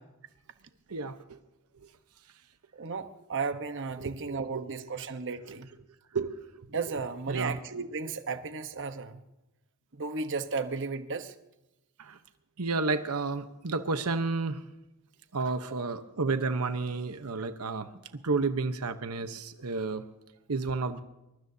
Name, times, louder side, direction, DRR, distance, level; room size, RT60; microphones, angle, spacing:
voice 1, 0.9-1.4 4.0-4.6 6.1-6.6 7.3-7.6 12.0-12.2 12.6-14.6 15.3-17.9 18.2-20.0 20.5-21.0, right 3 dB, 85° right, 9 dB, 1.0 m, -31 dB
voice 2, 2.7-5.7 6.7-9.2 9.9-11.3, right 4 dB, 60° right, 8 dB, 1.1 m, -34 dB
23.5 x 22.5 x 2.8 m, 0.94 s
head